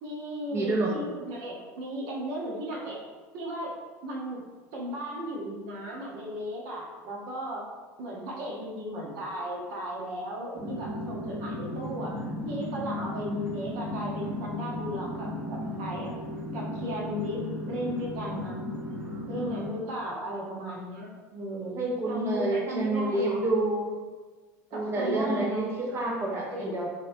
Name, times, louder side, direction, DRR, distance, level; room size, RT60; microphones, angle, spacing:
voice 1, 0.0-3.0 3.3-3.7 4.0-4.4 4.7-7.6 8.0-12.2 12.4-16.1 16.5-18.7 19.3-21.7 22.0-23.4 24.7-26.1 26.5-26.9, equal, 70° right, -3 dB, 1.1 m, -35 dB
voice 2, 0.5-1.0 21.8-24.0 24.7-26.9, right 2 dB, 30° right, -2 dB, 0.7 m, -28 dB
sound 1, 10.5-19.6, left 1 dB, 15° right, 1.0 m, -35 dB
3.9 x 3.2 x 2.7 m, 1.4 s
supercardioid pair, 90°, 8 cm